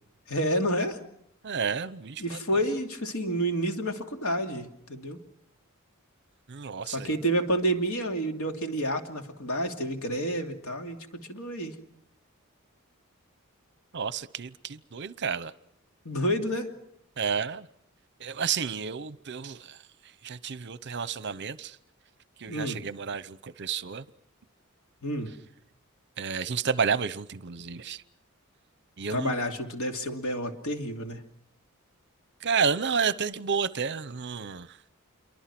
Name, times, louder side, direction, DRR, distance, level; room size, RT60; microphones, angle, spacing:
voice 1, 0.3-1.0 2.2-5.2 6.9-11.0 11.3-11.7 16.0-16.7 22.5-22.8 25.0-25.3 29.1-31.2, equal, 85° left, 5 dB, 2.7 m, -29 dB
voice 2, 1.4-2.4 6.5-7.2 13.9-15.5 17.2-17.7 18.2-19.8 20.2-21.8 22.4-24.0 26.2-28.0 29.0-29.4 32.4-34.7, right 6 dB, 55° right, 17 dB, 0.8 m, -31 dB
28.0 x 23.5 x 6.1 m, 0.77 s
head